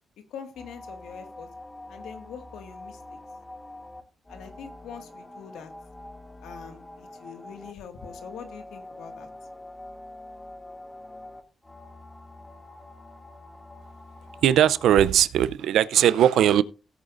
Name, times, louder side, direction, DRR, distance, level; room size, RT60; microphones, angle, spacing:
voice 1, 0.3-1.5 1.9-3.2 4.3-5.7 6.4-9.3, left 7 dB, 85° left, 1.9 m, -43 dB
sound 1, 0.5-15.1, left 1 dB, 20° left, 2.2 m, -45 dB
voice 2, 14.4-16.6, right 10 dB, 85° right, 0.5 m, -19 dB
17.0 x 8.6 x 2.6 m
cardioid pair, 60°, 0 cm